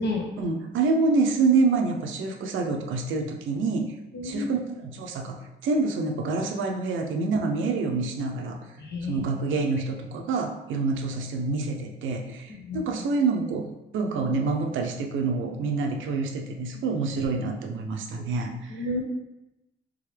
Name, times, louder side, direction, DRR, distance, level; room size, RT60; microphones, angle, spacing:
voice 1, 0.4-3.9 4.2-8.6 9.1-18.7, right 4 dB, 75° right, 3 dB, 0.7 m, -27 dB
voice 2, 4.1-4.5 8.8-9.3 12.5-12.8 18.2-18.3 18.7-19.0, left 2 dB, 60° left, 0 dB, 1.0 m, -31 dB
3.7 x 3.6 x 3.3 m, 0.96 s
cardioid pair, 90°, 20 cm